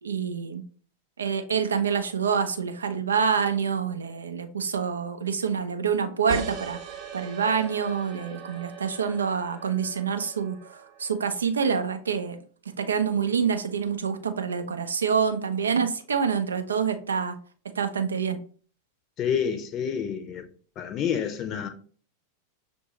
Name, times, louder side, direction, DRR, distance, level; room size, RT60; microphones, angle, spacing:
voice 1, 0.0-0.6 1.2-12.4 12.8-17.4 17.8-18.4, right 6 dB, 70° right, 0.5 m, -27 dB
sound 1, 6.3-11.5, right 6 dB, 40° right, 1.0 m, -40 dB
voice 2, 19.2-20.5 20.8-21.7, left 8 dB, 35° left, 0.7 m, -28 dB
6.4 x 2.6 x 2.9 m
figure-of-eight pair, 90°, 0 cm